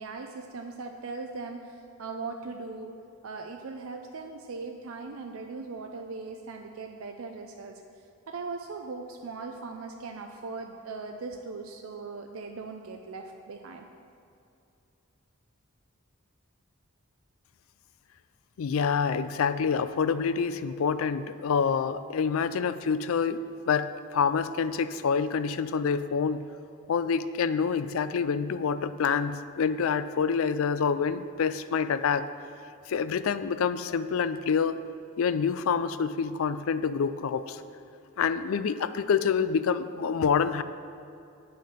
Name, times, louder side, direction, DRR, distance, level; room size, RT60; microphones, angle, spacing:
voice 1, 0.0-7.8 8.3-13.9, right 4 dB, 75° right, 4 dB, 0.5 m, -39 dB
voice 2, 18.6-26.4 26.9-32.3 32.9-34.8 35.2-37.6 38.2-40.6, left 6 dB, 75° left, 13 dB, 0.4 m, -27 dB
8.5 x 6.3 x 5.6 m, 2.6 s
head